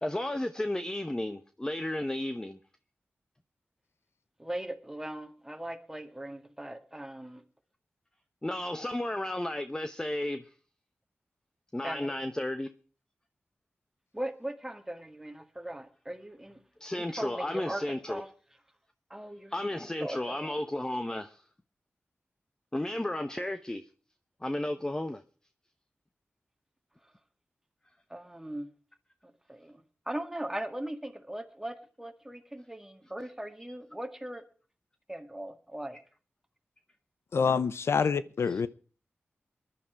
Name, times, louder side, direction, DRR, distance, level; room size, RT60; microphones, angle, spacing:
voice 1, 0.0-2.6 8.4-10.5 11.7-12.7 16.8-18.2 19.5-21.4 22.7-23.8 24.4-25.2 37.9-38.1 38.5-38.6, left 1 dB, 15° left, 0.9 m, -33 dB
voice 2, 4.4-7.4 11.8-12.2 14.1-16.6 16.9-18.3 19.1-20.6 28.1-28.7 29.2-34.4 35.1-36.0, right 1 dB, 10° right, 2.0 m, -39 dB
voice 3, 37.3-38.7, left 6 dB, 80° left, 0.7 m, -26 dB
20.5 x 11.5 x 4.6 m
wide cardioid pair, 100°, 4 cm